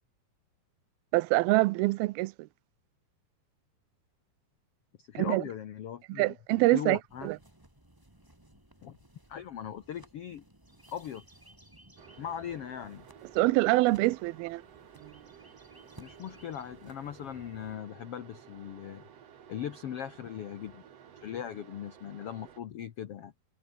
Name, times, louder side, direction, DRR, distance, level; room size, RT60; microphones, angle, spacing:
voice 1, 1.1-2.3 5.2-5.4 6.1-7.4 13.4-14.6 15.0-15.1, right 20 dB, 85° right, 2.4 m, -25 dB
voice 2, 5.0-6.4 6.7-7.3 8.8-9.0 9.3-10.4 10.9-11.2 12.2-13.0 16.0-19.0 19.5-20.8 21.2-23.3, left 9 dB, 85° left, 1.3 m, -39 dB
sound 1, 7.1-17.8, right 1 dB, 5° right, 2.7 m, -58 dB
sound 2, 12.0-22.6, right 8 dB, 50° right, 2.5 m, -54 dB
omnidirectional pair, 4.4 m